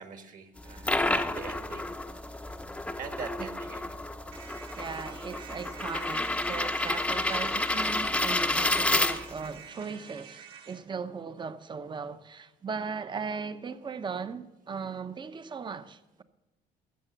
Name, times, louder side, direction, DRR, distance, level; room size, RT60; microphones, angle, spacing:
voice 1, 0.0-1.9 3.0-4.1, right 5 dB, 50° right, 1.7 m, -43 dB
sound 1, 0.6-9.6, left 2 dB, 5° left, 0.7 m, -30 dB
sound 2, 4.3-10.8, right 8 dB, 70° right, 2.4 m, -49 dB
voice 2, 4.7-16.2, right 5 dB, 25° right, 0.8 m, -38 dB
15.0 x 6.6 x 7.9 m
cardioid pair, 110°, 17 cm